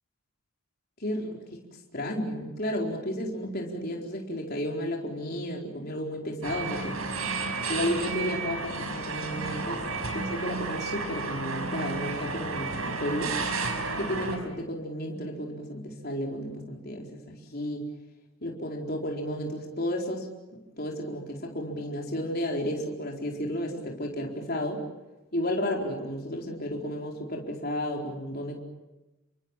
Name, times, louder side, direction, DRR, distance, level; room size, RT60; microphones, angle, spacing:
voice 1, 1.0-1.4 1.9-7.0 7.7-13.4 13.9-17.9 18.4-20.3 20.8-24.8 25.3-28.6, equal, 45° left, 0 dB, 4.5 m, -32 dB
sound 1, 6.4-14.4, right 3 dB, 80° right, 5.5 m, -32 dB
29.5 x 23.5 x 7.4 m, 1.0 s
head